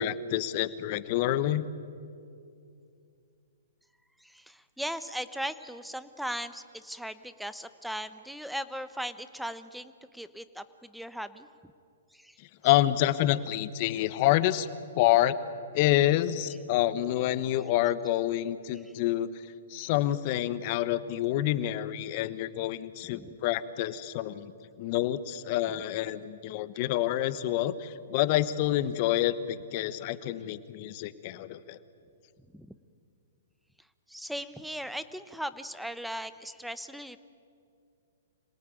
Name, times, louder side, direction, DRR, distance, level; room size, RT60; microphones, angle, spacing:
voice 1, 0.0-1.6 12.4-14.7 14.9-15.4 15.7-19.3 19.7-24.5 24.8-31.8, left 13 dB, 45° left, 14 dB, 1.2 m, -27 dB
voice 2, 4.2-11.5 12.1-12.4 23.2-23.3 32.5-32.7 34.1-37.2, equal, ahead, 13 dB, 1.0 m, -38 dB
26.5 x 18.0 x 9.3 m, 2.5 s
hypercardioid pair, 130°, 0 cm